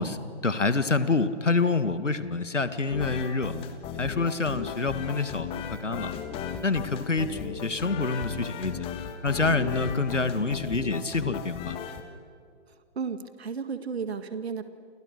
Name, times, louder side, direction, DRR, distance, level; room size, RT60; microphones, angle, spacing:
voice 1, 0.0-3.5 4.0-6.1 6.6-8.7 9.2-11.8, left 3 dB, 85° left, 12 dB, 2.0 m, -27 dB
sound 1, 2.9-12.0, left 8 dB, 15° left, 1.5 m, -36 dB
voice 2, 13.0-14.6, right 5 dB, 60° right, 10 dB, 2.0 m, -33 dB
29.5 x 28.0 x 6.7 m, 2.2 s
figure-of-eight pair, 135°, 36 cm